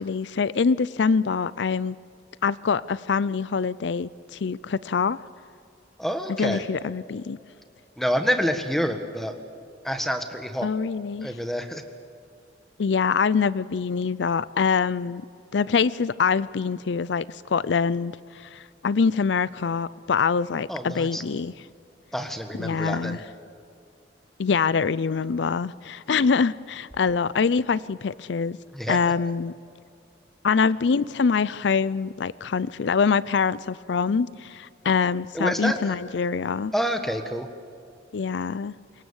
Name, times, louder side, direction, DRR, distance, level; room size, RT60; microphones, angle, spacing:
voice 1, 0.0-2.0 2.4-5.2 6.4-7.4 10.6-11.3 12.8-15.3 15.5-21.5 22.6-23.2 24.4-28.6 28.9-29.5 30.4-36.7 38.1-38.7, left 5 dB, 80° left, 0.5 m, -24 dB
voice 2, 6.0-6.6 8.0-9.3 9.8-10.7 11.2-11.8 20.7-21.2 22.1-23.2 28.7-29.0 35.3-35.9 36.7-37.5, equal, ahead, 1.6 m, -27 dB
26.0 x 22.5 x 7.2 m
head